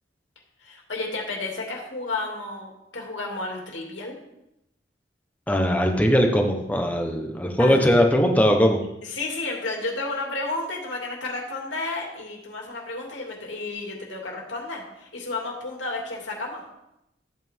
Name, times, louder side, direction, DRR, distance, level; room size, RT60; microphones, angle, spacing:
voice 1, 0.6-4.2 7.6-7.8 9.0-16.7, left 2 dB, 85° left, -1 dB, 2.7 m, -32 dB
voice 2, 5.5-8.8, equal, 10° left, 2 dB, 1.2 m, -20 dB
14.0 x 8.7 x 3.7 m, 0.87 s
head